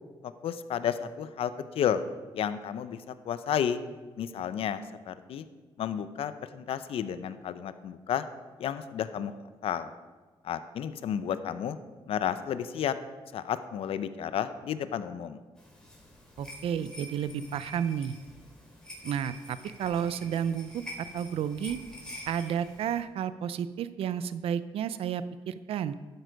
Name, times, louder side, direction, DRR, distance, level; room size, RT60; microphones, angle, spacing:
voice 1, 0.2-2.0 2.3-3.0 3.3-3.8 4.2-5.4 5.8-8.2 8.6-9.3 9.6-9.9 10.4-11.8 12.1-12.9 13.3-15.4, left 9 dB, 75° left, 12 dB, 0.6 m, -32 dB
sound 1, 15.6-23.0, left 1 dB, 5° left, 3.5 m, -47 dB
voice 2, 16.4-18.2 19.0-21.8 22.3-25.9, right 8 dB, 80° right, 14 dB, 0.5 m, -32 dB
12.5 x 8.0 x 5.2 m, 1.3 s
cardioid pair, 80°, 10 cm